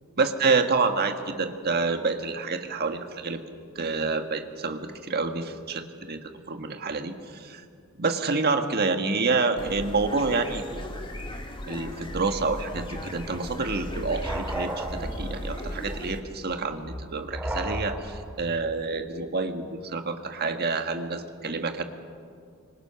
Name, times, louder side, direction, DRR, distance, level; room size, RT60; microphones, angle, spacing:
voice 1, 0.2-3.4 3.7-7.6 8.0-10.6 11.7-21.8, right 4 dB, 50° right, 7 dB, 1.5 m, -28 dB
sound 1, 9.6-16.2, left 1 dB, 25° left, 1.8 m, -37 dB
sound 2, 12.7-18.4, right 1 dB, 10° right, 2.2 m, -35 dB
25.5 x 23.5 x 5.9 m, 2.3 s
head